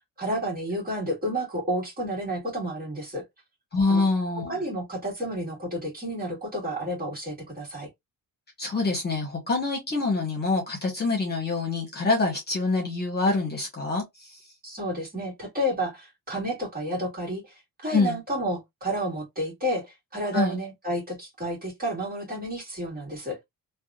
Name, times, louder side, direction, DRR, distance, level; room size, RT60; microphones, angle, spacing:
voice 1, 0.2-3.2 3.9-4.1 4.5-7.9 14.6-23.4, equal, 25° right, 2.0 m, -31 dB
voice 2, 3.7-4.6 8.6-14.4 17.9-18.2 20.3-20.6, left 3 dB, 30° left, 1.3 m, -26 dB
3.4 x 2.5 x 2.4 m
cardioid pair, 150°, 35 cm